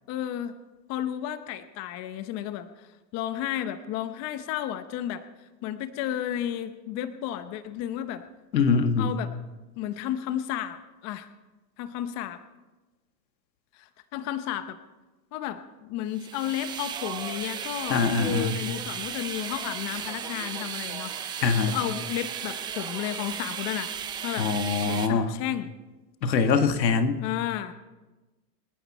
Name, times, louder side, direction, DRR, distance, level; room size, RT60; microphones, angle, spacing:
voice 1, 0.1-0.6 0.9-8.2 9.0-9.3 9.8-11.3 11.8-12.4 13.7-14.8 15.3-23.9 24.2-24.5 24.9-25.7 27.2-27.7, left 11 dB, 30° left, 11 dB, 0.9 m, -33 dB
voice 2, 8.5-9.1 17.9-18.6 21.4-21.8 24.4-25.3 26.2-27.2, left 5 dB, 90° left, 8 dB, 1.8 m, -23 dB
sound 1, 16.1-25.1, right 8 dB, 10° right, 0.4 m, -35 dB
26.5 x 10.0 x 4.3 m, 1.2 s
hypercardioid pair, 135°, 50 cm